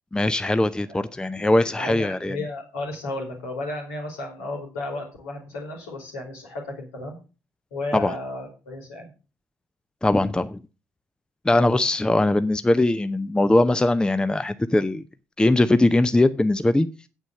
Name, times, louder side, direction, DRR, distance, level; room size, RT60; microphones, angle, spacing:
voice 1, 0.1-2.4 7.9-8.1 10.0-10.6 11.4-15.0 15.4-16.9, left 2 dB, 10° left, 13 dB, 0.7 m, -21 dB
voice 2, 1.4-7.2 7.7-9.1 11.5-11.8, left 2 dB, 75° left, 0 dB, 3.4 m, -34 dB
9.0 x 8.4 x 6.2 m, 0.33 s
figure-of-eight pair, 40°, 8 cm